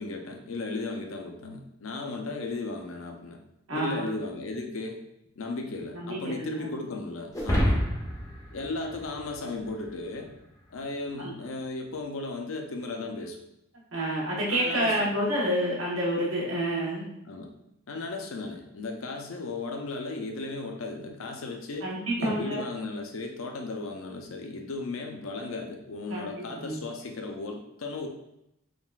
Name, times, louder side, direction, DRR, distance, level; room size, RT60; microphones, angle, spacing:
voice 1, 0.0-3.4 3.7-5.0 5.4-7.8 8.5-10.3 10.7-13.4 14.5-15.1 17.2-17.5 17.9-21.9 22.2-28.1, left 3 dB, 75° left, 3 dB, 0.5 m, -35 dB
voice 2, 3.7-4.0 6.1-6.7 11.2-11.3 13.9-17.0 21.8-22.6 26.1-26.7, right 1 dB, 80° right, -4 dB, 1.0 m, -28 dB
sound 1, 7.3-9.9, equal, 15° left, 0.4 m, -28 dB
3.6 x 2.3 x 2.3 m, 0.81 s
head